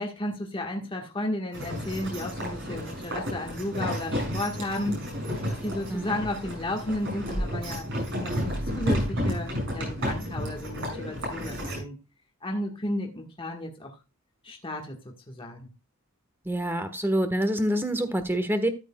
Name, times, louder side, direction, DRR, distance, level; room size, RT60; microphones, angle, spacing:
voice 1, 0.0-5.0 5.5-7.9 8.2-12.0 12.4-13.9 14.4-15.0 15.3-15.7, left 1 dB, 25° left, 1.5 m, -33 dB
sound 1, 1.5-11.8, equal, 55° right, 6.6 m, -31 dB
voice 2, 16.4-18.7, right 1 dB, 10° right, 1.3 m, -26 dB
13.5 x 8.2 x 2.3 m
head